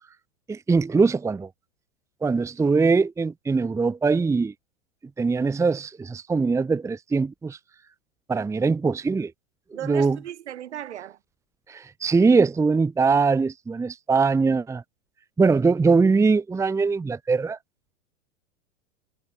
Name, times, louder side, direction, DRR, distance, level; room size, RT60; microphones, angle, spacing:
voice 1, 0.5-1.5 2.2-4.5 5.2-7.6 8.3-9.3 9.8-10.2 11.7-14.8 15.4-17.6, right 4 dB, 10° right, 0.9 m, -22 dB
voice 2, 9.7-11.2, right 11 dB, 65° right, 2.9 m, -36 dB
figure-of-eight pair, 95°, 37 cm